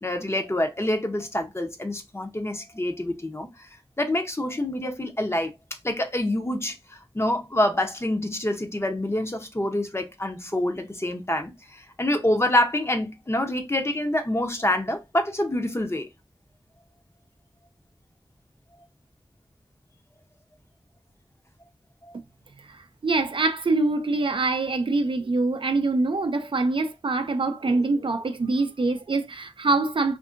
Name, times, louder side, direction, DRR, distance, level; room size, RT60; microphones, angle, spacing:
voice 1, 0.0-3.5 4.0-5.5 5.8-6.8 7.1-16.1, left 1 dB, 25° left, 0.7 m, -26 dB
voice 2, 23.0-30.2, right 3 dB, 60° right, 0.4 m, -24 dB
2.6 x 2.6 x 2.4 m
wide cardioid pair, 50°, 10 cm